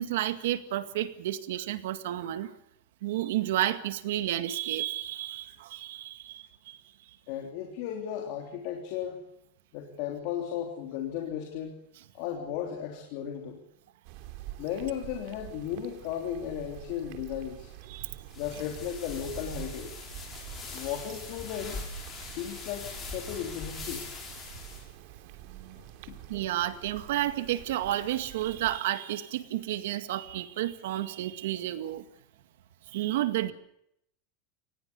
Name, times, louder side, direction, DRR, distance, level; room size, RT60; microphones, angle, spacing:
voice 1, 0.0-2.5 3.0-6.8 17.9-18.3 25.5-25.8 26.3-32.0 32.9-33.5, right 13 dB, 70° right, 10 dB, 2.0 m, -31 dB
voice 2, 7.3-9.2 9.7-11.8 12.1-13.6 14.6-17.7 18.4-19.9 20.7-21.8 22.4-24.0 25.8-26.1, left 9 dB, 45° left, 3 dB, 3.4 m, -35 dB
sound 1, 14.0-28.8, right 13 dB, 45° right, 2.8 m, -47 dB
sound 2, 18.3-24.8, left 3 dB, 15° left, 6.3 m, -42 dB
26.0 x 19.5 x 7.0 m, 0.77 s
supercardioid pair, 175°, 0 cm